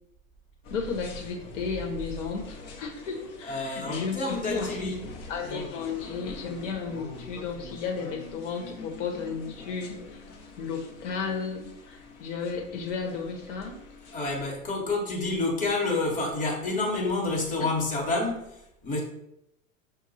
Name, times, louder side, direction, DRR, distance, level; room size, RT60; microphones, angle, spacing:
sound 1, 0.6-14.5, left 2 dB, 35° left, 0.8 m, -44 dB
voice 1, 0.7-5.0 5.3-10.2 10.6-13.8 17.6-17.7, left 5 dB, 60° left, 2 dB, 1.2 m, -34 dB
voice 2, 3.4-5.0 5.5-5.7 14.1-19.0, left 2 dB, 20° left, -1 dB, 1.2 m, -29 dB
5.4 x 2.3 x 4.0 m, 0.80 s
hypercardioid pair, 105°, 40 cm